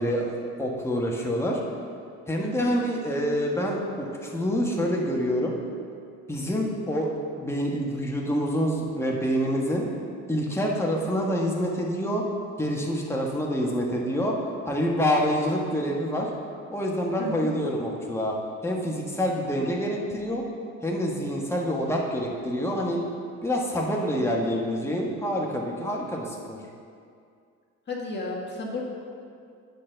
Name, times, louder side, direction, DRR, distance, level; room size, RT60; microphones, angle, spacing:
voice 1, 0.0-1.6 2.3-5.6 6.3-7.1 7.4-9.8 10.3-12.2 12.6-16.3 16.7-18.4 18.6-20.4 20.8-23.0 23.4-26.6, equal, 10° left, -2 dB, 1.3 m, -27 dB
voice 2, 2.4-2.7 17.2-17.5 27.9-28.8, left 2 dB, 35° left, -3 dB, 1.7 m, -33 dB
8.5 x 4.2 x 6.6 m, 2.3 s
cardioid pair, 90°, 30 cm